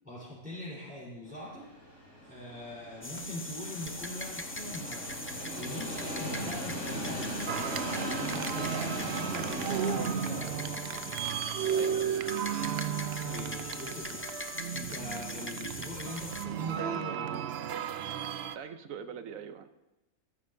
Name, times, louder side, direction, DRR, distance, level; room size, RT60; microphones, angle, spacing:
voice 1, 0.0-7.5 8.1-11.0 12.9-17.5, left 1 dB, 5° right, -8 dB, 3.9 m, -43 dB
Train, 1.3-14.2, equal, 60° left, 5.4 m, -40 dB
sound 1, 3.0-16.4, left 1 dB, 15° left, 0.4 m, -41 dB
sound 2, 7.5-18.6, right 8 dB, 60° right, 0.7 m, -34 dB
voice 2, 11.7-12.1 18.5-19.7, right 7 dB, 80° right, 9 dB, 1.2 m, -42 dB
14.0 x 14.0 x 2.7 m, 1.0 s
omnidirectional pair, 1.4 m